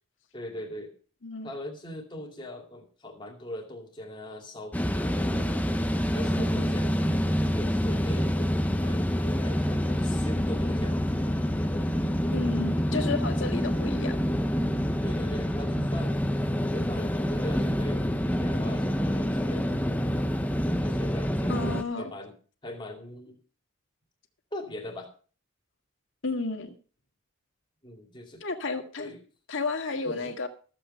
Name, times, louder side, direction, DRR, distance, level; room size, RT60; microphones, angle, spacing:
voice 1, 0.3-1.0 1.4-5.6 6.1-11.0 15.0-16.1 16.6-20.2 20.8-22.3 22.6-23.4 24.5-25.1 27.8-28.4 29.0-29.2 30.0-30.3, left 1 dB, 20° left, 2 dB, 2.4 m, -40 dB
sound 1, 4.7-21.8, equal, 5° left, 0.7 m, -27 dB
voice 2, 12.3-14.2 21.5-22.1 26.2-26.7 28.4-29.1 29.5-30.5, left 3 dB, 65° left, 4 dB, 1.9 m, -32 dB
14.0 x 7.8 x 5.5 m, 0.40 s
head